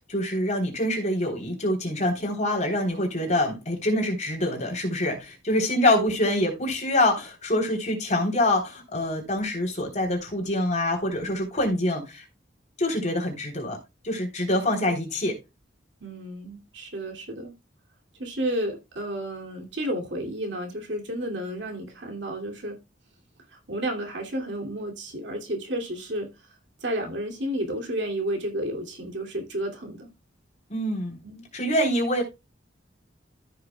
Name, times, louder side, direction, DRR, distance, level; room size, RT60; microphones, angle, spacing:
voice 1, 0.1-12.2 12.8-13.8 14.0-15.4 30.7-31.2 31.5-32.2, left 1 dB, 40° left, 3.5 m, -25 dB
voice 2, 16.0-17.5 18.2-22.8 23.5-26.3 26.8-30.1 31.2-31.4, right 1 dB, 70° right, 2.6 m, -31 dB
14.0 x 6.6 x 2.3 m
head